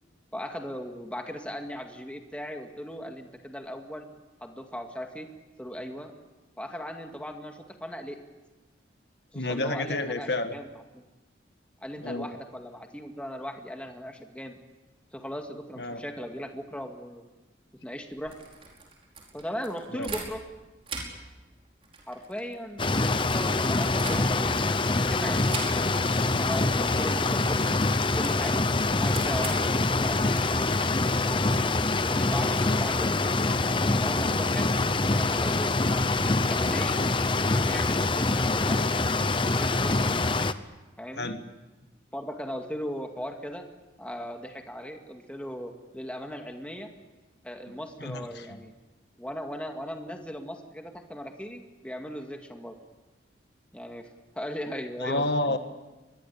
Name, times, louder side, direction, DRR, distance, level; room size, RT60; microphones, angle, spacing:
voice 1, 0.3-4.1 4.4-5.3 5.6-6.1 6.6-8.2 9.3-10.7 10.9-11.0 11.8-14.6 15.1-17.2 17.8-18.3 19.3-20.4 22.1-25.9 26.4-27.8 28.1-28.6 29.0-31.0 31.2-33.6 33.9-34.8 35.1-37.0 37.4-38.9 39.5-40.2 41.0-41.3 42.1-43.7 44.0-46.9 47.4-48.7 49.2-52.7 53.7-54.1 54.4-55.3, equal, 5° left, 3 dB, 2.1 m, -38 dB
voice 2, 9.3-10.6 12.0-12.3 15.8-16.0 19.9-20.1 41.2-41.4 48.0-48.6 55.0-55.6, left 2 dB, 60° left, 8 dB, 1.6 m, -30 dB
sound 1, 18.1-20.6 20.8-24.6 25.5-26.2 26.4-26.6 26.9-31.5, right 4 dB, 30° right, 4.9 m, -42 dB
sound 2, 22.8-40.5, left 3 dB, 25° left, 0.8 m, -25 dB
25.0 x 21.5 x 8.6 m, 1.1 s
head